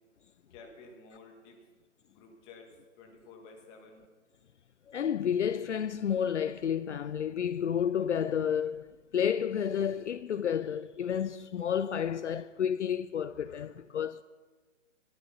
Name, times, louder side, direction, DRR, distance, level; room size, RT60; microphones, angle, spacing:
voice 1, 0.5-1.6 2.1-2.7 3.0-4.0, left 4 dB, 15° left, 1.6 m, -52 dB
voice 2, 4.9-14.2, left 8 dB, 65° left, 0.6 m, -31 dB
13.0 x 11.0 x 5.9 m
hypercardioid pair, 155°, 39 cm